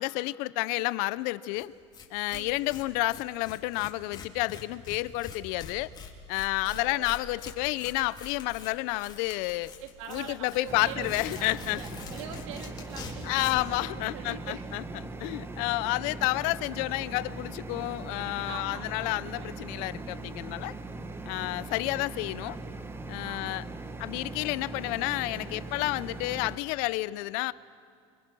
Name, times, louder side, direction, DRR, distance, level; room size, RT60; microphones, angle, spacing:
voice 1, 0.0-1.7 2.1-5.9 6.3-9.7 10.1-11.8 13.2-14.8 15.2-20.7 21.2-22.6 23.1-23.6 24.0-27.5, left 20 dB, 65° left, 17 dB, 0.7 m, -30 dB
Tearing, 1.6-1.7 1.9-2.0 2.3-13.7, left 5 dB, 25° left, 3.3 m, -45 dB
voice 2, 2.3-2.6 6.6-7.1 9.8-14.7 18.5-19.8 23.2-23.6, right 8 dB, 85° right, 5 dB, 2.6 m, -44 dB
sound 1, 10.7-26.6, right 2 dB, 15° right, 1.0 m, -40 dB
29.5 x 26.0 x 6.2 m, 2.1 s
supercardioid pair, 130°, 16 cm